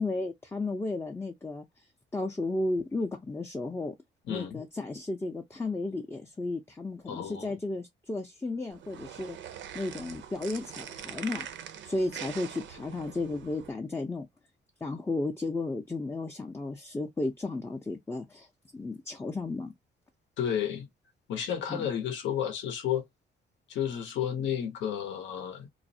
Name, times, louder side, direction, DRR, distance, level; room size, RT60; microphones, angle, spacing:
voice 1, 0.0-1.7 2.1-3.9 4.3-11.5 11.8-14.3 14.8-18.5 18.7-19.7 21.7-21.9, left 2 dB, 10° left, 0.4 m, -34 dB
voice 2, 4.3-4.6 7.1-7.5 20.4-20.9 21.3-23.0 23.7-25.7, left 9 dB, 70° left, 0.7 m, -32 dB
sound 1, 8.7-13.7, right 9 dB, 70° right, 0.5 m, -43 dB
2.3 x 2.0 x 2.6 m
cardioid pair, 90°, 20 cm